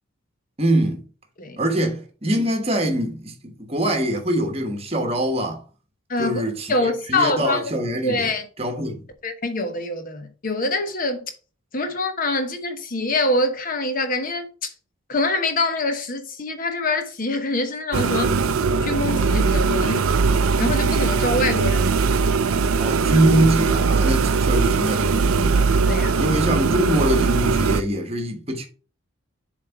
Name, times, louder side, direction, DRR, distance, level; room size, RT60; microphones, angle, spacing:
voice 1, 0.6-1.0 1.6-5.6 6.2-6.7 7.1-8.3 8.6-9.0 22.8-25.6 26.2-28.7, right 1 dB, 30° right, 1.1 m, -23 dB
voice 2, 6.1-6.4 6.7-7.6 8.0-8.5 9.2-11.3 11.7-14.7 15.1-18.3 18.8-20.1 20.6-21.9 25.8-26.3, left 2 dB, 40° left, 0.9 m, -25 dB
sound 1, 17.9-27.8, right 4 dB, 85° right, 0.5 m, -20 dB
7.3 x 3.3 x 4.5 m
head